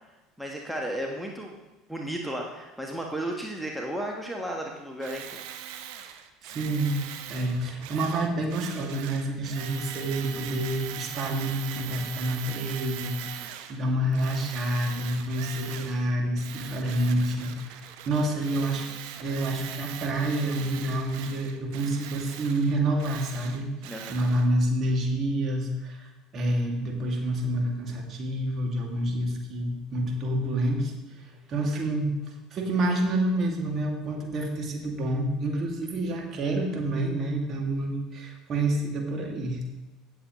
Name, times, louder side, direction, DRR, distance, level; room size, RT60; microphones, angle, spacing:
voice 1, 0.4-1.6 1.9-5.4 13.4-13.5 23.8-24.1, right 1 dB, ahead, 0 dB, 1.3 m, -34 dB
Tools, 5.0-13.8 14.1-16.1 16.3-24.5, right 10 dB, 55° right, 0.8 m, -41 dB
voice 2, 6.4-7.0 7.3-18.9 19.2-39.6, right 1 dB, 35° right, 1 dB, 2.3 m, -28 dB
17.0 x 7.0 x 3.1 m, 1.1 s
figure-of-eight pair, 65°, 0 cm